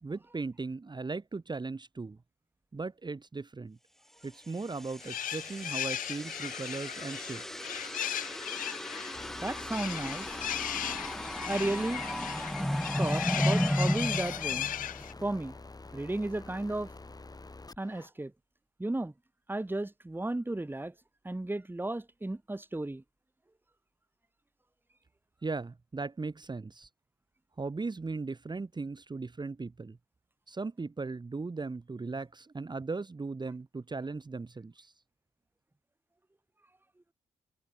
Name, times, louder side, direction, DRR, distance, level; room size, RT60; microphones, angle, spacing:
voice 1, 0.0-2.2 2.7-3.8 4.2-7.7 25.4-26.9 27.6-30.0 30.5-34.9, right 3 dB, 30° right, 1.7 m, -38 dB
sound 1, 4.6-15.3, equal, 5° left, 1.2 m, -34 dB
sound 2, 5.0-15.1, left 11 dB, 65° left, 0.6 m, -37 dB
sound 3, 9.1-18.1, left 3 dB, 25° left, 2.9 m, -48 dB
voice 2, 9.4-10.4 10.9-11.0 11.3-12.1 13.0-14.7 15.2-15.5 15.9-16.9 17.8-18.3 18.8-19.1 19.5-20.9 21.2-23.0, right 2 dB, 15° right, 1.9 m, -34 dB
hypercardioid pair, 50°, 15 cm